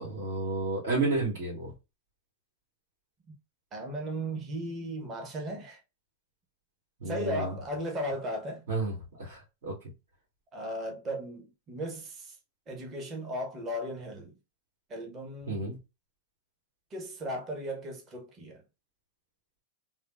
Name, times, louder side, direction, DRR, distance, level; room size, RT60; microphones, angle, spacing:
voice 1, 0.0-1.7 7.0-7.6 8.7-9.7 15.5-15.8, right 3 dB, 75° right, 1.6 m, -31 dB
voice 2, 3.7-5.8 7.1-8.6 10.5-12.4 12.7-14.3 14.9-15.6 16.9-18.6, equal, 25° right, 0.8 m, -36 dB
3.5 x 2.1 x 2.3 m
hypercardioid pair, 135°, 0 cm